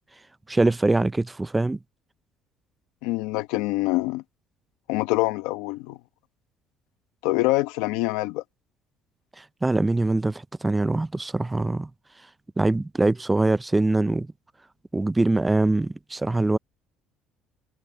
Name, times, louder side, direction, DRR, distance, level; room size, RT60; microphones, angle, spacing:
voice 1, 0.5-1.8 9.4-11.9 12.6-14.3 14.9-16.6, right 2 dB, 10° right, 0.4 m, -23 dB
voice 2, 3.0-4.2 4.9-6.0 7.2-8.4, left 19 dB, 90° left, 1.2 m, -25 dB
cardioid pair, 105°, 0 cm